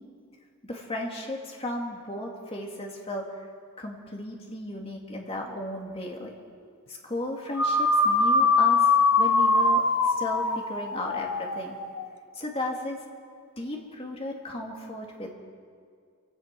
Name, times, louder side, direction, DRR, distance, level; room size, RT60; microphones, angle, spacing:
voice 1, 0.6-3.4 3.8-6.3 6.9-8.9 9.2-11.8 12.4-13.0 13.6-15.3, left 1 dB, 25° left, 0 dB, 2.5 m, -35 dB
sound 1, 7.5-12.1, left 3 dB, 70° left, 1.2 m, -23 dB
26.0 x 17.0 x 6.1 m, 2.2 s
head